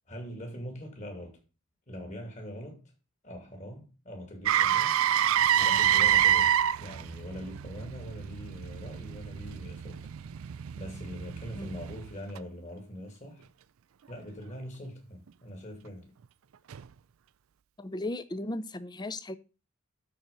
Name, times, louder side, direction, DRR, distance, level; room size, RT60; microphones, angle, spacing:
voice 1, 0.1-1.4 1.9-2.8 3.2-5.0 5.5-10.1 10.8-13.4 14.1-16.1, equal, 35° left, 2.4 m, -42 dB
Motor vehicle (road), 4.5-12.4 16.7-16.8, right 10 dB, 90° right, 0.4 m, -27 dB
voice 2, 17.8-19.4, left 1 dB, 20° left, 0.5 m, -36 dB
12.5 x 4.4 x 5.1 m
head